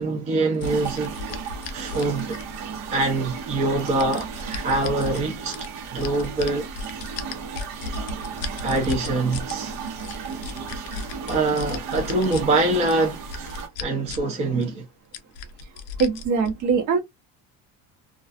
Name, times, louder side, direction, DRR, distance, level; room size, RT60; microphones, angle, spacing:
voice 1, 0.0-1.4 1.7-2.4 2.9-5.6 5.9-6.7 8.6-9.8 11.3-13.5 13.8-14.9, right 2 dB, 20° right, 0.4 m, -24 dB
sound 1, 0.6-2.7 3.4-5.2 5.5-9.5 9.9-12.4 12.9-14.3 14.6-14.7 15.1-16.5, left 4 dB, 45° left, 0.4 m, -35 dB
sound 2, 0.6-13.7, right 6 dB, 80° right, 0.9 m, -35 dB
voice 2, 16.0-17.0, right 5 dB, 50° right, 0.8 m, -22 dB
2.3 x 2.3 x 2.4 m
cardioid pair, 175°, 36 cm